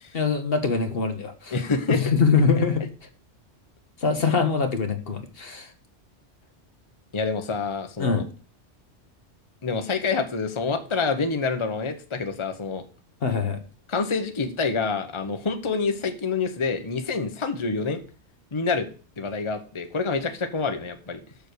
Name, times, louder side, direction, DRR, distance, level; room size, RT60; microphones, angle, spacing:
voice 1, 0.1-1.5 2.0-2.8 4.0-5.7 8.0-8.3 13.2-13.6, left 5 dB, 55° left, 7 dB, 1.2 m, -23 dB
voice 2, 1.5-2.0 7.1-8.2 9.6-12.8 13.9-18.0 18.5-18.9 19.2-21.2, left 4 dB, 25° left, 7 dB, 0.9 m, -27 dB
6.9 x 6.3 x 6.7 m, 0.38 s
omnidirectional pair, 1.2 m